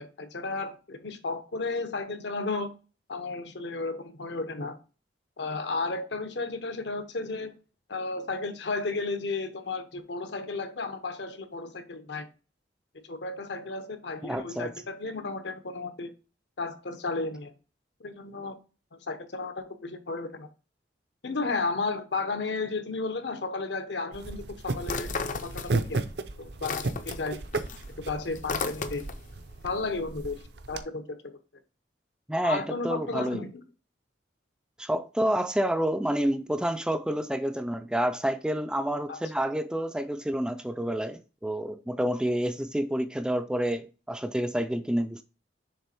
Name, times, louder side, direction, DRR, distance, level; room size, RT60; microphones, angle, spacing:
voice 1, 0.0-2.7 3.1-4.8 5.4-7.5 7.9-12.3 13.0-16.1 16.6-17.5 18.0-18.6 18.9-20.5 21.2-25.1 25.4-26.0 26.4-27.4 28.1-29.0 29.6-30.3 30.7-31.2 32.4-33.6 39.1-39.2, left 3 dB, 70° left, 0.9 m, -33 dB
voice 2, 14.2-14.7 32.3-33.4 34.8-45.2, equal, 5° right, 0.3 m, -29 dB
sound 1, 24.1-30.8, right 3 dB, 65° right, 0.6 m, -35 dB
sound 2, 24.8-26.1 26.4-29.3, left 4 dB, 45° left, 0.5 m, -34 dB
6.8 x 3.4 x 4.3 m
head